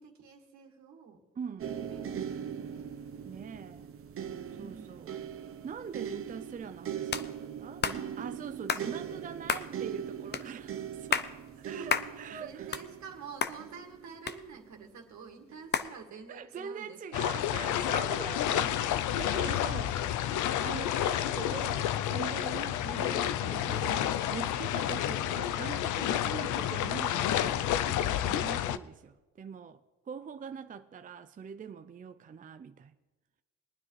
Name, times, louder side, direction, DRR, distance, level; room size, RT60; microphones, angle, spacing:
voice 1, 0.0-1.2 1.7-2.9 4.5-5.4 9.6-9.8 10.1-10.2 11.7-17.4 17.9-18.8 19.6-20.2 20.9-21.2, right 5 dB, 70° right, 2.1 m, -49 dB
voice 2, 1.4-1.7 3.3-3.9 4.6-5.1 5.6-7.9 8.2-11.3 11.6-12.6 16.3-19.9 20.6-29.8 30.1-32.9, right 6 dB, 25° right, 0.4 m, -43 dB
sound 1, 1.6-14.7 15.5-15.7, right 9 dB, 45° right, 0.8 m, -40 dB
sound 2, 7.1-7.3 7.8-8.0 8.7-8.9 9.5-9.7 10.3-10.5 10.9-11.3 11.9-12.1 12.5-13.1 13.4-13.6 14.3-14.8 15.7-15.9, left 6 dB, 35° left, 0.6 m, -30 dB
sound 3, 17.1-28.8, left 11 dB, 80° left, 0.5 m, -30 dB
22.0 x 9.6 x 3.2 m
cardioid pair, 90°, 30 cm